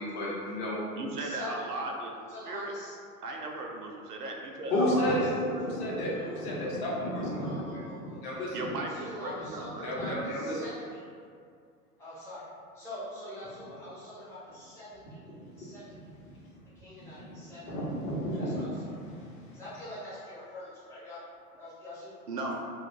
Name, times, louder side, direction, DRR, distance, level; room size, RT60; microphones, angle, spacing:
voice 1, 0.0-0.8 4.7-8.7 9.8-10.6 15.9-16.0 17.2-17.3 17.6-19.4, equal, 45° left, -6 dB, 0.8 m, -32 dB
voice 2, 1.0-2.1 2.5-2.7 3.2-5.1 5.4-5.7 8.5-10.5 22.3-22.6, right 2 dB, 85° right, 1 dB, 0.5 m, -37 dB
voice 3, 2.3-2.9 4.7-5.0 6.0-6.3 7.4-8.2 9.0-11.0 12.0-12.4 12.8-15.0 15.6-16.0 16.8-17.6 18.4-18.7 19.5-21.2 21.6-22.1, left 1 dB, 5° left, -12 dB, 0.5 m, -44 dB
2.3 x 2.1 x 3.2 m, 2.2 s
figure-of-eight pair, 100°, 46 cm